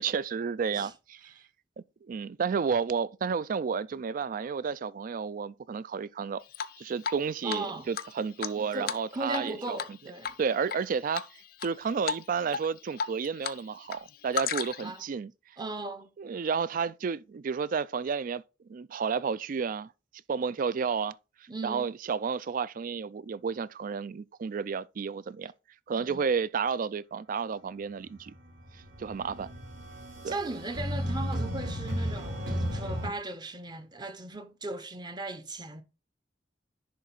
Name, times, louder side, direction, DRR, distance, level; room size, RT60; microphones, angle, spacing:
voice 1, 0.0-1.3 2.0-6.4 6.8-10.0 10.4-11.2 11.6-15.3 16.2-18.4 18.7-19.9 20.3-21.1 21.6-25.5 25.9-28.3 29.0-29.5 30.2-30.4, right 6 dB, 45° right, 0.4 m, -31 dB
Drip, 6.5-7.2 7.5-7.6 7.9-9.5 9.8-10.0 10.2-10.8 11.1-11.7 12.1-12.2 12.5-13.6 13.8-15.0, left 7 dB, 55° left, 0.5 m, -34 dB
voice 2, 7.4-7.9 8.6-10.3 14.8-15.0 15.6-16.1 21.5-21.9 26.0-26.2 30.3-35.8, right 2 dB, 25° right, 0.7 m, -37 dB
sound 1, 28.3-33.1, equal, 80° right, 4.4 m, -34 dB
10.5 x 3.7 x 4.0 m
head